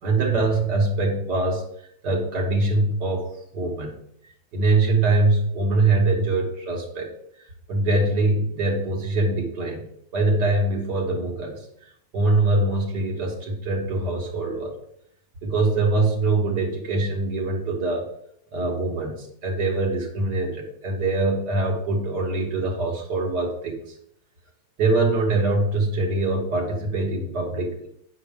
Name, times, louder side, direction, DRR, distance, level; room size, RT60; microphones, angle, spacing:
voice 1, 0.0-1.6 2.0-4.0 4.5-7.1 7.7-11.7 12.1-14.7 15.4-18.1 18.5-23.9 24.8-27.9, right 2 dB, 65° right, 0 dB, 1.9 m, -23 dB
9.2 x 6.1 x 3.5 m, 0.71 s
omnidirectional pair, 2.1 m